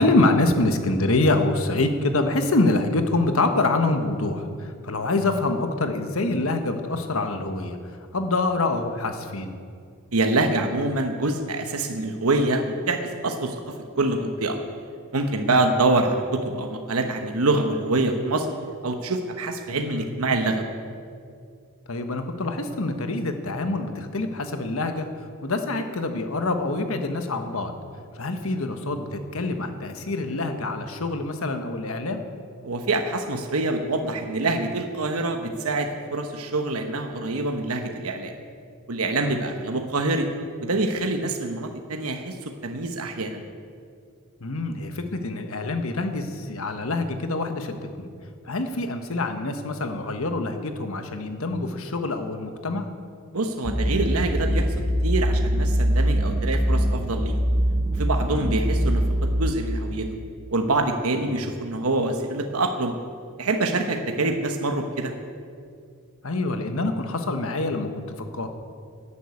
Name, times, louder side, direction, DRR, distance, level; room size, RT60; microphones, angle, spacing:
voice 1, 0.0-7.8 8.1-9.6 15.5-15.6 19.7-20.1 21.9-25.1 25.4-27.7 28.2-32.2 39.3-39.4 44.4-48.1 48.4-52.9 58.3-58.5 61.2-61.3 66.2-68.5, left 2 dB, 70° left, 7 dB, 1.2 m, -25 dB
voice 2, 10.1-14.6 15.1-18.5 18.8-20.7 32.6-38.3 38.9-40.3 40.6-43.4 53.3-54.7 55.0-57.4 57.9-60.1 60.5-62.9 63.4-65.1, right 2 dB, 85° right, 5 dB, 1.1 m, -25 dB
sound 1, 53.6-59.5, equal, 15° right, 0.8 m, -23 dB
11.5 x 10.0 x 8.4 m, 2.3 s
head